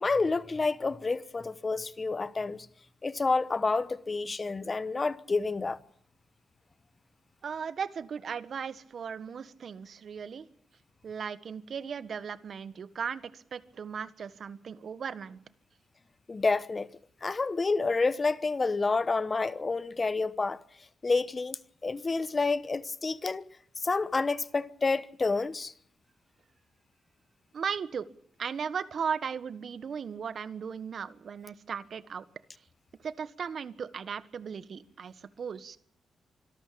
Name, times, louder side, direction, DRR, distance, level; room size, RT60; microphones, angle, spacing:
voice 1, 0.0-2.7 3.0-5.8 16.3-16.9 17.2-20.6 21.0-23.5 23.8-25.7, left 3 dB, 30° left, 1.1 m, -29 dB
voice 2, 7.4-10.5 11.0-15.4 27.5-28.1 28.4-32.2 33.0-35.8, right 6 dB, 60° right, 1.4 m, -37 dB
25.5 x 13.0 x 8.7 m
cardioid pair, 100°, 0 cm